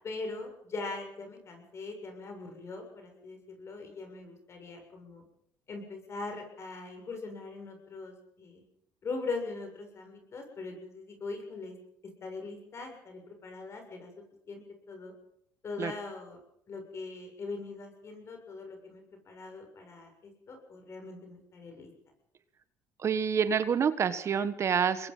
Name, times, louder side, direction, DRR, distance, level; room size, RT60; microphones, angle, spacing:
voice 1, 0.0-5.2 5.7-8.6 9.0-11.8 12.0-14.1 14.5-15.1 15.6-16.4 16.7-21.9, left 3 dB, 45° left, 4 dB, 7.1 m, -41 dB
voice 2, 23.0-25.1, right 7 dB, 45° right, 12 dB, 1.4 m, -27 dB
25.5 x 20.5 x 5.6 m, 0.71 s
supercardioid pair, 80°, 7 cm